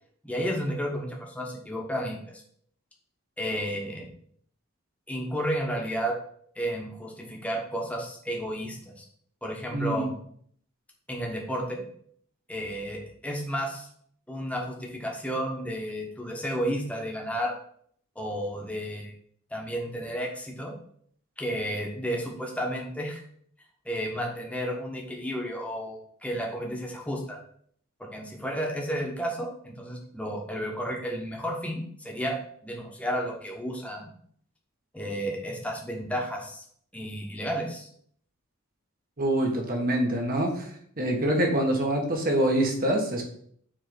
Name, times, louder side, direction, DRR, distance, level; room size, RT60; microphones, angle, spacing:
voice 1, 0.2-2.4 3.4-4.1 5.1-6.2 6.5-9.0 9.4-10.1 11.1-11.8 12.5-13.9 14.3-17.6 18.1-19.1 19.5-20.7 21.4-23.2 23.8-27.4 28.0-32.4 32.6-34.1 34.9-36.6 36.9-37.9, equal, 5° left, 0 dB, 1.3 m, -32 dB
voice 2, 9.7-10.0 39.2-40.7 41.0-43.2, right 1 dB, 45° right, 1 dB, 1.4 m, -25 dB
6.7 x 3.6 x 5.3 m, 0.62 s
head